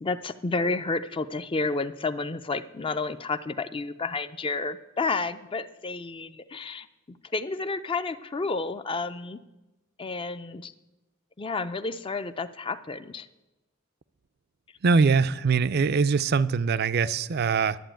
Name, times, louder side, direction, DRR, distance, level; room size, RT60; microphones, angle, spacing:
voice 1, 0.0-9.4 10.0-10.7 11.4-13.3, left 3 dB, 25° left, 0.4 m, -31 dB
voice 2, 14.8-17.8, right 5 dB, 50° right, 0.4 m, -22 dB
11.0 x 7.7 x 8.9 m
head